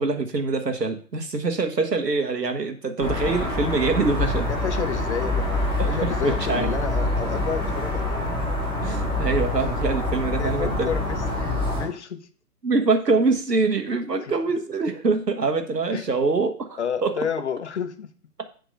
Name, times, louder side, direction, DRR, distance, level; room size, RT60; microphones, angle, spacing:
voice 1, 0.0-4.5 5.8-6.7 8.8-10.9 12.6-17.2 18.4-18.5, right 3 dB, 80° right, 1.4 m, -24 dB
sound 1, 3.0-11.9, left 2 dB, 5° left, 2.1 m, -26 dB
voice 2, 4.5-8.3 10.2-12.3 14.2-14.3 15.9-16.0 16.8-18.1, left 7 dB, 45° left, 0.8 m, -31 dB
7.7 x 3.9 x 5.4 m
figure-of-eight pair, 135°, 48 cm